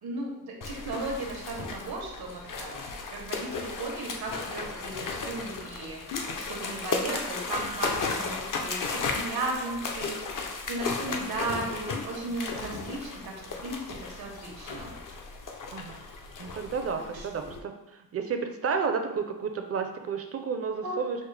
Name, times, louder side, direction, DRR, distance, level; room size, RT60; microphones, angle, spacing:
voice 1, 0.0-2.8 3.1-6.0 6.5-10.2 10.7-14.9 17.1-17.3 20.8-21.2, right 2 dB, 85° right, -1 dB, 1.0 m, -36 dB
sound 1, 0.6-17.6, left 4 dB, 60° left, 0.6 m, -35 dB
voice 2, 11.5-12.0 12.5-13.0 15.7-16.0 16.4-21.2, right 5 dB, 40° right, 6 dB, 0.5 m, -32 dB
6.2 x 2.1 x 3.2 m, 0.94 s
wide cardioid pair, 100°, 36 cm